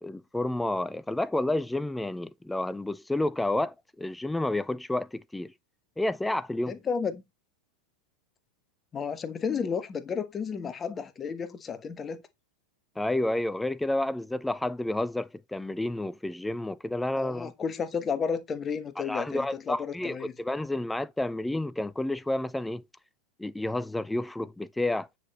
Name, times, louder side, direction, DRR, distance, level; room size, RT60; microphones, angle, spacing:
voice 1, 0.0-5.5 6.0-6.8 13.0-17.5 19.1-22.8 23.4-25.1, left 1 dB, 5° left, 0.4 m, -30 dB
voice 2, 6.7-7.2 8.9-12.2 17.2-20.3, left 6 dB, 20° left, 1.2 m, -32 dB
9.5 x 5.9 x 3.1 m
figure-of-eight pair, 90°, 0 cm